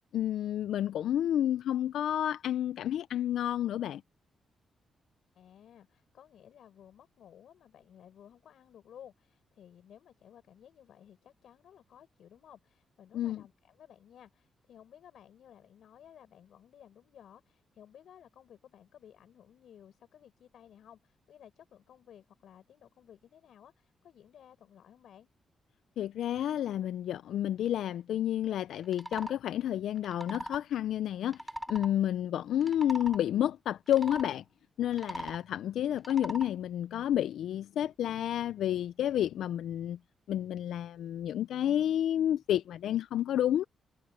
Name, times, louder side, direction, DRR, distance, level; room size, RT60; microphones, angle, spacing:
voice 1, 0.1-4.0 13.1-13.4 26.0-31.4 31.7-34.4 34.8-40.0 40.3-43.6, left 11 dB, 90° left, 0.3 m, -30 dB
voice 2, 5.3-25.3 31.9-32.1, left 9 dB, 70° left, 7.1 m, -56 dB
sound 1, 28.8-29.4 30.0-30.6 31.3-31.9 32.5-33.2 33.9-34.3 34.9-35.4 36.0-36.5, right 1 dB, 5° right, 4.2 m, -40 dB
wide cardioid pair, 160°, 0 cm